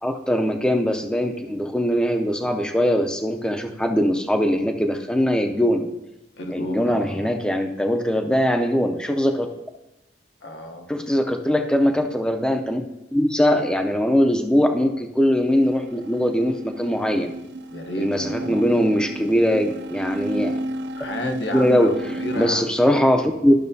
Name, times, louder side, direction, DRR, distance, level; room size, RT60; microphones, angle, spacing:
voice 1, 0.0-5.9 6.5-9.5 10.9-12.9 13.1-17.3 18.0-20.5 21.5-21.9 22.4-23.5, equal, 5° left, 5 dB, 0.5 m, -21 dB
voice 2, 6.4-7.4 10.4-10.9 17.7-18.7 20.9-22.7, left 1 dB, 75° left, 3 dB, 0.9 m, -32 dB
sound 1, 15.4-22.5, right 1 dB, 80° right, 0.4 m, -33 dB
12.5 x 6.0 x 2.7 m, 0.96 s
head